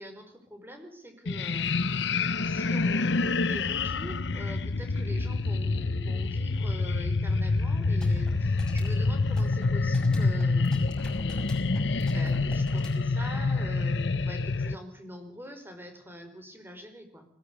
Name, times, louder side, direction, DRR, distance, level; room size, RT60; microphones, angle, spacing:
voice 1, 0.0-11.6 12.1-17.3, equal, 10° right, 6 dB, 5.1 m, -44 dB
sound 1, 1.2-14.7, left 3 dB, 70° left, 0.9 m, -27 dB
sound 2, 7.7-13.1, equal, 5° left, 6.1 m, -43 dB
20.5 x 19.0 x 8.2 m, 0.65 s
head